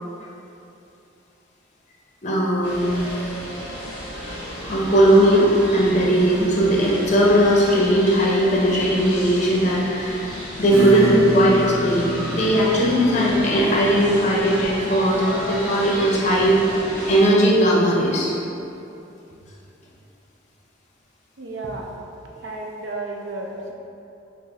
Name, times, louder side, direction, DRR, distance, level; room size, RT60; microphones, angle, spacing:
voice 1, 2.2-3.0 4.7-16.6 17.1-18.3, right 1 dB, 40° left, -4 dB, 0.6 m, -18 dB
sound 1, 2.6-17.3, equal, 10° left, 1.0 m, -33 dB
Acoustic guitar / Strum, 10.7-17.9, equal, 15° right, 0.7 m, -31 dB
voice 2, 21.4-21.9 22.4-23.7, right 2 dB, 70° right, -1 dB, 0.5 m, -32 dB
5.9 x 2.1 x 2.8 m, 2.8 s
head